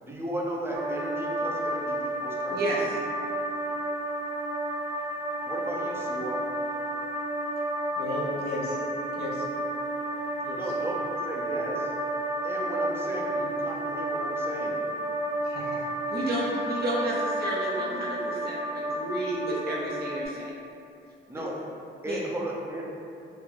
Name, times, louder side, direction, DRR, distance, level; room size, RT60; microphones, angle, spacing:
voice 1, 0.0-2.7 5.5-6.4 10.5-11.9 12.4-14.9 21.3-21.7 22.0-22.8, right 1 dB, 10° right, -3 dB, 0.5 m, -35 dB
sound 1, 0.7-20.3, right 1 dB, 90° right, 0.4 m, -31 dB
voice 2, 2.5-3.0 16.1-20.5 22.0-22.2, right 1 dB, 50° right, -4 dB, 0.7 m, -31 dB
voice 3, 8.0-8.8 9.1-9.5 10.4-10.7 15.4-16.3, left 2 dB, 55° left, -3 dB, 0.6 m, -35 dB
2.4 x 2.2 x 3.2 m, 2.6 s
cardioid pair, 90°, 20 cm